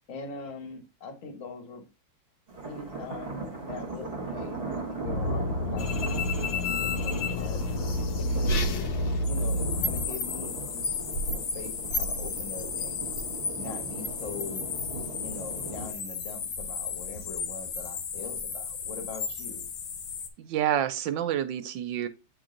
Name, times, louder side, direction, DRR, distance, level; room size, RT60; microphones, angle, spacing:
voice 1, 0.1-1.8 2.6-7.6 8.2-8.6 9.2-10.9 11.1-13.0 13.5-14.7 15.2-19.7, left 4 dB, 45° left, 1.4 m, -42 dB
sound 1, 2.5-15.9, right 3 dB, 35° right, 1.3 m, -38 dB
sound 2, 5.1-10.1, left 1 dB, 90° left, 1.4 m, -30 dB
sound 3, 5.8-20.3, left 5 dB, 75° left, 1.6 m, -34 dB
voice 2, 20.4-22.1, right 10 dB, 75° right, 1.3 m, -28 dB
8.6 x 3.0 x 3.8 m
omnidirectional pair, 2.2 m